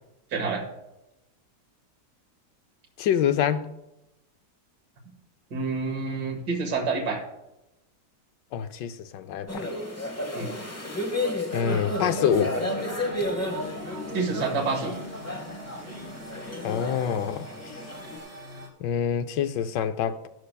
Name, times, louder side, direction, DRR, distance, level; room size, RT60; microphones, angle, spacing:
voice 1, 0.3-0.6 5.5-7.2 10.3-10.5 14.1-14.9, right 4 dB, 70° right, 2.1 m, -28 dB
voice 2, 3.0-3.7 8.5-9.6 11.5-12.5 16.6-17.5 18.8-20.3, left 8 dB, 80° left, 1.2 m, -26 dB
sound 1, 9.5-18.2, left 1 dB, 15° left, 0.6 m, -32 dB
sound 2, 11.6-18.7, equal, 40° right, 3.0 m, -41 dB
13.0 x 12.5 x 2.2 m
omnidirectional pair, 1.9 m